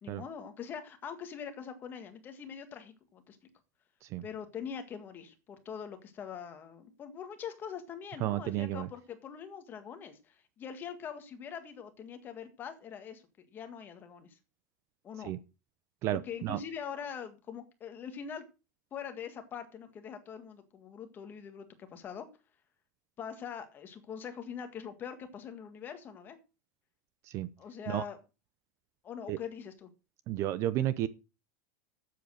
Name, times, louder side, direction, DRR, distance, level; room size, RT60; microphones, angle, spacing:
voice 1, 0.0-3.4 4.2-13.2 13.5-14.4 15.0-15.3 16.1-18.4 18.9-22.3 23.2-26.4 27.6-28.2 29.0-29.9, left 7 dB, 20° left, 1.7 m, -43 dB
voice 2, 8.2-8.9 15.2-15.4 16.0-16.6 27.3-27.5 27.9-28.0 29.3-29.4 30.3-31.1, right 13 dB, 35° right, 0.6 m, -32 dB
12.0 x 7.8 x 6.3 m
supercardioid pair, 170°, 9 cm